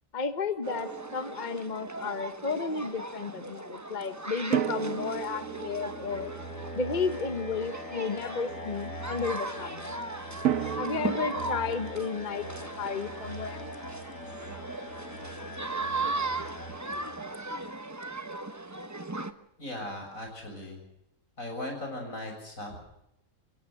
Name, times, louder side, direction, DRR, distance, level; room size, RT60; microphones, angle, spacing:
voice 1, 0.1-6.3 6.7-9.9 10.8-13.7, left 5 dB, 35° left, 10 dB, 1.2 m, -33 dB
sound 1, 0.6-19.3, right 2 dB, 15° right, 0.9 m, -38 dB
Drum, 0.7-2.0 4.5-7.5 10.5-13.3, right 10 dB, 85° right, 1.4 m, -35 dB
sound 2, 4.8-17.7, equal, 60° left, 2.8 m, -43 dB
voice 2, 19.6-20.8 21.4-22.8, left 1 dB, 90° left, 2 dB, 7.6 m, -38 dB
27.0 x 16.0 x 6.6 m, 0.79 s
omnidirectional pair, 1.4 m